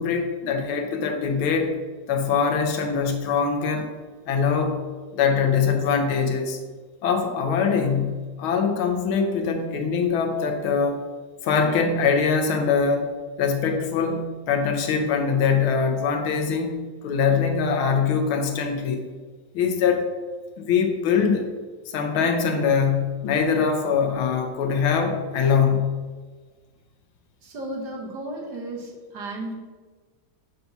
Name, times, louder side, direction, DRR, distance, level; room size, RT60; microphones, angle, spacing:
voice 1, 0.0-1.7 2.1-3.9 4.3-4.8 5.1-6.6 7.0-11.0 11.4-13.1 13.4-16.8 17.0-19.0 19.5-20.1 20.6-21.5 21.9-26.0, left 6 dB, 90° left, 5 dB, 1.6 m, -23 dB
voice 2, 27.4-29.6, right 1 dB, 60° right, 0 dB, 1.5 m, -34 dB
6.7 x 2.7 x 5.7 m, 1.4 s
omnidirectional pair, 2.2 m